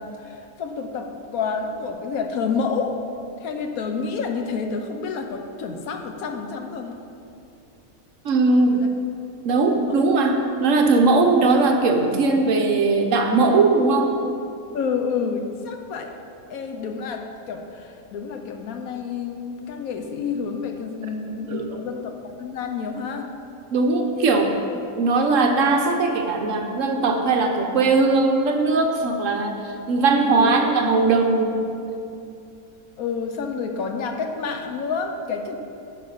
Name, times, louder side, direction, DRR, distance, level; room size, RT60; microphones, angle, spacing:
voice 1, 0.0-3.0 3.4-7.0 8.7-8.9 9.8-10.1 14.7-16.1 16.5-23.3 30.3-30.5 33.0-35.6, left 5 dB, 75° left, 5 dB, 1.2 m, -29 dB
voice 2, 8.2-8.8 9.4-14.1 21.5-21.8 23.7-24.6 25.0-31.6, right 3 dB, 65° right, 3 dB, 1.1 m, -19 dB
10.5 x 5.3 x 5.6 m, 2.6 s
omnidirectional pair, 1.5 m